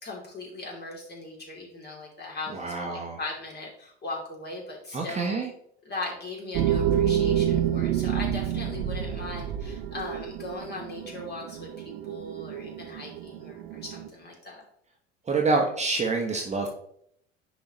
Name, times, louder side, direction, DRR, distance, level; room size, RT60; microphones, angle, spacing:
voice 1, 0.0-5.4 5.8-14.6, left 2 dB, 30° left, -2 dB, 2.9 m, -39 dB
voice 2, 2.5-3.2 4.9-5.5 15.3-16.7, right 3 dB, 20° right, 0 dB, 1.1 m, -27 dB
sound 1, 6.5-14.1, right 10 dB, 55° right, 0.8 m, -28 dB
10.0 x 4.2 x 3.0 m, 0.68 s
figure-of-eight pair, 65°, 34 cm